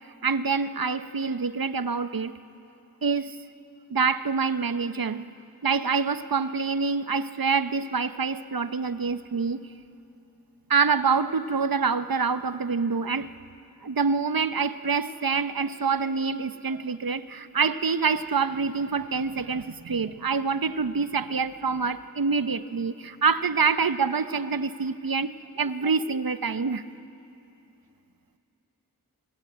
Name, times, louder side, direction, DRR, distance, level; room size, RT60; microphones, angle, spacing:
voice 1, 0.2-2.3 3.0-3.4 3.9-5.2 5.6-9.6 10.7-13.3 13.8-25.3 25.6-26.8, right 5 dB, 90° right, 12 dB, 0.8 m, -26 dB
25.0 x 25.0 x 8.6 m, 2.7 s
wide cardioid pair, 40°, 34 cm